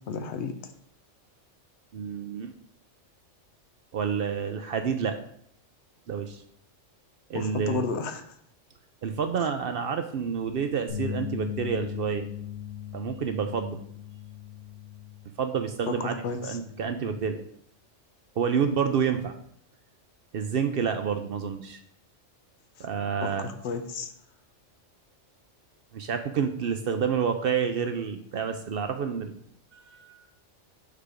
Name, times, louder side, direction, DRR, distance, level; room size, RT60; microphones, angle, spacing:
voice 1, 0.1-0.7 7.3-8.2 9.4-9.5 15.9-16.6 23.2-24.1, left 5 dB, 70° left, 8 dB, 0.9 m, -33 dB
voice 2, 1.9-2.5 3.9-5.2 6.1-6.4 7.3-7.8 9.0-12.3 12.9-13.8 15.4-17.4 18.4-19.3 20.3-21.8 22.8-23.5 25.9-29.3 29.7-30.3, right 7 dB, 60° right, 7 dB, 0.6 m, -29 dB
sound 1, 10.9-17.1, left 9 dB, 55° left, 1.7 m, -39 dB
6.7 x 3.4 x 4.9 m, 0.66 s
omnidirectional pair, 1.3 m